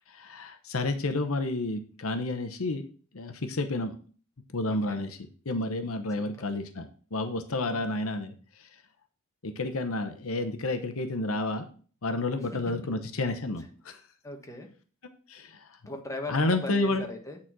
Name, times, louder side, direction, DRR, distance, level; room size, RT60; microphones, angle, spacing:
voice 1, 0.1-2.8 3.1-4.0 4.5-5.2 5.4-8.7 9.4-11.7 12.0-14.0 15.3-15.8 16.3-17.1, left 2 dB, 70° left, 8 dB, 0.9 m, -30 dB
voice 2, 4.6-5.0 6.2-6.4 7.5-7.8 14.2-14.7 15.9-17.4, left 1 dB, 15° left, 2 dB, 1.3 m, -38 dB
8.8 x 4.2 x 6.1 m, 0.42 s
head